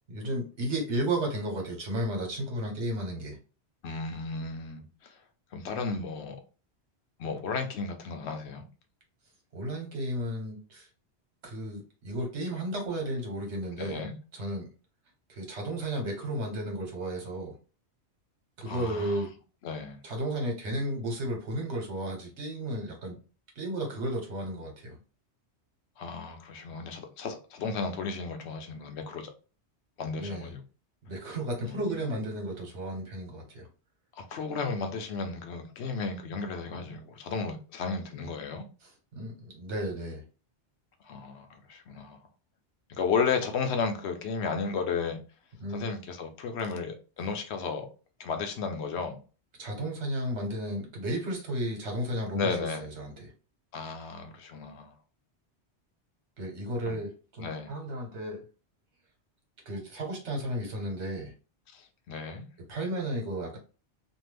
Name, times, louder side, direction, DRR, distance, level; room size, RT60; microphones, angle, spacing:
voice 1, 0.1-3.4 9.5-10.9 11.4-14.0 14.3-14.7 15.3-17.5 18.6-19.3 20.0-23.2 23.5-25.0 30.1-30.5 31.0-33.7 39.1-40.2 45.6-45.8 49.6-53.3 56.4-58.4 59.7-61.3 62.7-63.6, right 1 dB, 85° right, 1.3 m, -33 dB
voice 2, 3.8-5.2 5.5-6.4 7.2-8.6 13.8-14.2 18.6-19.3 19.6-20.0 26.0-29.3 30.0-30.6 31.6-32.0 34.2-38.6 41.0-42.2 42.9-45.2 45.7-47.9 48.2-49.2 52.3-52.9 53.7-54.9 56.9-57.0 57.4-57.7 61.7-62.5, left 5 dB, 75° left, 0.9 m, -34 dB
2.6 x 2.3 x 3.2 m
omnidirectional pair, 1.1 m